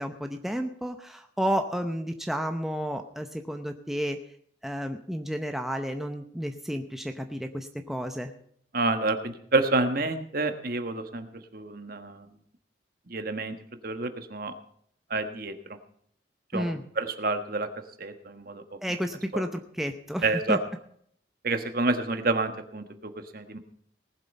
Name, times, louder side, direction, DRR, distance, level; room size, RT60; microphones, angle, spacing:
voice 1, 0.0-4.2 4.6-8.3 16.5-16.8 18.8-20.6, equal, ahead, 5 dB, 0.7 m, -31 dB
voice 2, 8.7-11.3 11.5-12.3 13.1-13.5 13.8-14.5 15.1-15.5 16.5-16.7 17.0-17.7 18.0-18.6 19.3-19.4 20.2-20.6 21.4-23.6, right 3 dB, 50° right, 8 dB, 1.4 m, -28 dB
19.0 x 7.7 x 5.4 m, 0.63 s
head